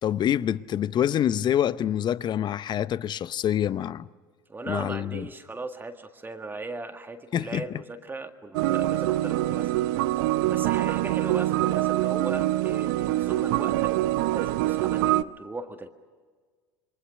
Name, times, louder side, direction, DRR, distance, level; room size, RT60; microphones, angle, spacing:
voice 1, 0.0-4.1 4.7-5.3 7.3-7.6, left 10 dB, 40° left, 0.8 m, -26 dB
voice 2, 4.5-9.8 10.2-13.9 14.1-15.9, right 3 dB, 15° right, 1.7 m, -38 dB
sound 1, 8.5-15.2, right 15 dB, 65° right, 0.7 m, -25 dB
28.0 x 23.5 x 6.4 m
hypercardioid pair, 75°, 12 cm